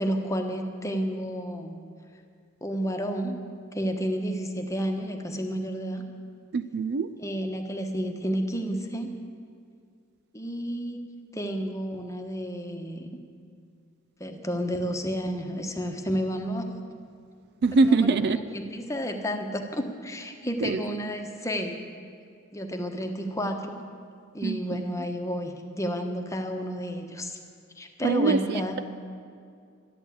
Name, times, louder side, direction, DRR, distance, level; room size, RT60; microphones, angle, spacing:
voice 1, 0.0-1.8 2.6-3.4 3.7-6.0 7.2-9.1 10.3-11.0 11.3-13.2 14.2-16.7 17.8-18.1 18.5-21.8 22.5-23.8 24.3-27.4 27.8-28.8, equal, 15° left, 4 dB, 1.1 m, -31 dB
voice 2, 6.5-7.1 17.6-18.4 20.6-20.8 24.4-24.8 28.0-28.8, right 3 dB, 50° right, 13 dB, 0.4 m, -24 dB
12.5 x 11.0 x 8.5 m, 2.3 s
head